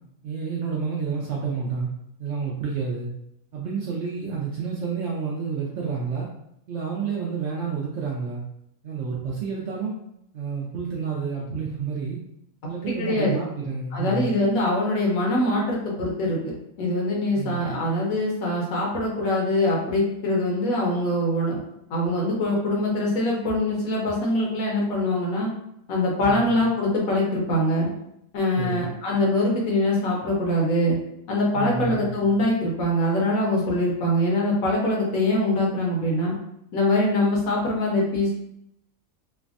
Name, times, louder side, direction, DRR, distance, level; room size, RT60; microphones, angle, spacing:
voice 1, 0.2-1.9 2.2-3.1 3.5-6.3 6.7-8.4 8.8-9.9 10.3-12.2 12.7-14.3 17.4-17.7 26.2-26.5 28.6-28.9 31.5-32.1, right 5 dB, 65° right, -3 dB, 0.7 m, -29 dB
voice 2, 12.9-13.4 13.9-21.6 21.9-25.5 25.9-27.9 28.3-31.0 31.3-36.3 36.7-38.4, left 1 dB, 70° left, -2 dB, 1.2 m, -23 dB
3.2 x 2.1 x 2.5 m, 0.76 s
omnidirectional pair, 1.6 m